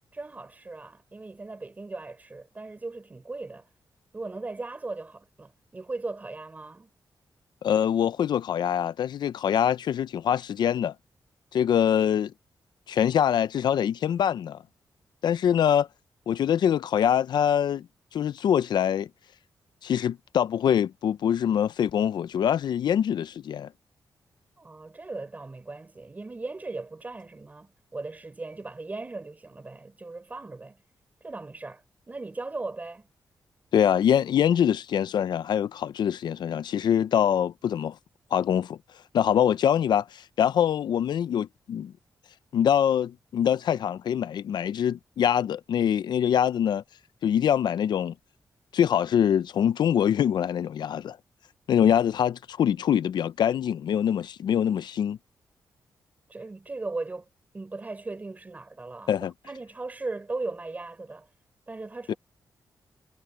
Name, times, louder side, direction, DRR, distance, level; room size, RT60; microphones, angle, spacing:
voice 1, 0.1-3.7 4.1-6.9 24.6-30.8 31.2-33.1 56.3-57.3 57.5-59.1 59.4-61.3 61.7-62.2, right 3 dB, 20° right, 3.8 m, -38 dB
voice 2, 7.6-10.9 11.5-12.3 12.9-14.6 15.2-15.9 16.3-17.9 18.1-19.1 19.8-23.7 33.7-38.0 38.3-38.8 39.1-41.9 42.5-46.8 47.2-48.1 48.7-51.2 51.7-55.2 59.1-59.3 62.1-62.2, left 9 dB, 75° left, 0.5 m, -24 dB
wide cardioid pair, 160°, 8 cm